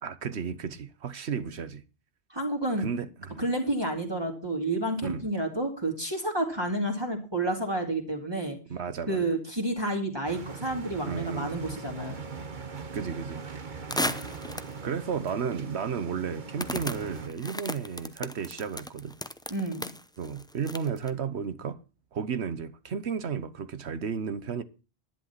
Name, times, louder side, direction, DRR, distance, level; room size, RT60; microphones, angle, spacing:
voice 1, 0.0-1.8 2.8-3.4 5.0-5.3 8.7-9.3 11.0-11.6 12.9-13.4 14.8-19.2 20.2-21.8 22.1-24.6, right 6 dB, 70° right, 1.2 m, -33 dB
voice 2, 2.3-2.9 3.4-8.6 9.1-12.2 19.5-19.9, right 1 dB, 20° right, 2.8 m, -30 dB
sound 1, 10.2-17.3, right 5 dB, 45° right, 1.2 m, -40 dB
sound 2, 13.9-14.8 15.5-15.6 16.6-21.1, left 1 dB, 5° left, 0.6 m, -35 dB
11.5 x 10.5 x 5.7 m
omnidirectional pair, 1.2 m